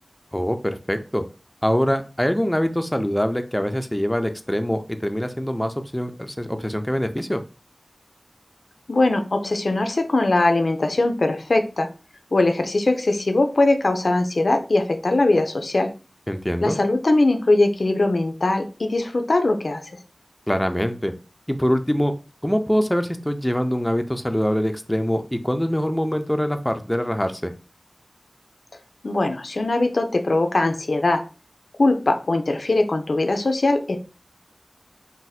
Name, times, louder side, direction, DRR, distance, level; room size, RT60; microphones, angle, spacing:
voice 1, 0.3-1.2 1.6-7.4 16.3-16.8 20.5-21.1 21.5-22.1 22.4-27.5, equal, 10° left, 7 dB, 0.4 m, -24 dB
voice 2, 8.9-11.9 12.3-15.9 16.6-20.0 29.0-31.2 31.8-34.0, left 2 dB, 80° left, 7 dB, 0.4 m, -21 dB
2.6 x 2.1 x 4.0 m, 0.33 s
wide cardioid pair, 50°, 0 cm